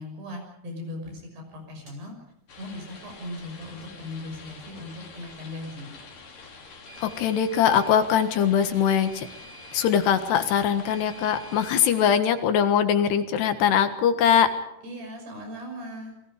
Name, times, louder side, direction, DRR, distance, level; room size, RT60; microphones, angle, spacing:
voice 1, 0.0-2.1 2.6-5.9 14.8-16.2, left 1 dB, 80° right, 3 dB, 8.4 m, -38 dB
sound 1, 1.9-2.0 6.9-8.0 8.9-10.0 10.9-12.0, right 4 dB, 20° right, 4.6 m, -49 dB
sound 2, 2.5-12.1, left 4 dB, 55° left, 5.0 m, -47 dB
voice 2, 7.0-9.3 9.7-14.5, left 8 dB, 85° left, 8 dB, 3.7 m, -22 dB
28.5 x 22.0 x 5.1 m, 0.79 s
omnidirectional pair, 4.7 m